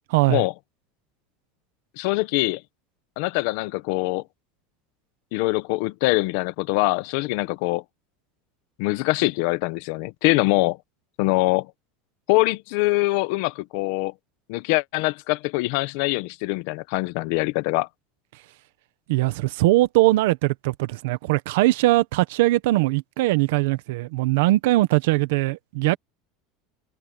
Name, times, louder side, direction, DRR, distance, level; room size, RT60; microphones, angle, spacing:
voice 1, 0.1-0.4 19.1-26.0, right 18 dB, 70° right, 1.1 m, -21 dB
voice 2, 2.0-2.6 3.2-4.2 5.3-7.8 8.8-10.8 11.2-11.7 12.3-14.1 14.5-17.9, left 21 dB, 55° left, 1.0 m, -23 dB
supercardioid pair, 180°, 0 cm